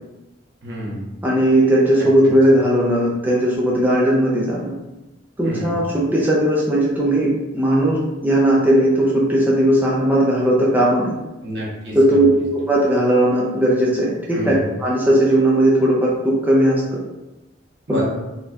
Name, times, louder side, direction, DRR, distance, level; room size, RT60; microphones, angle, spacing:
voice 1, 0.6-1.0 2.0-2.1 5.4-5.8 11.4-12.2 14.3-14.6 17.9-18.0, equal, 65° right, -4 dB, 1.0 m, -29 dB
voice 2, 1.2-4.7 5.4-11.1 11.9-12.3 12.5-14.5 14.8-16.8 17.9-18.0, right 1 dB, 10° right, -5 dB, 0.5 m, -17 dB
4.2 x 2.8 x 2.3 m, 1.0 s
head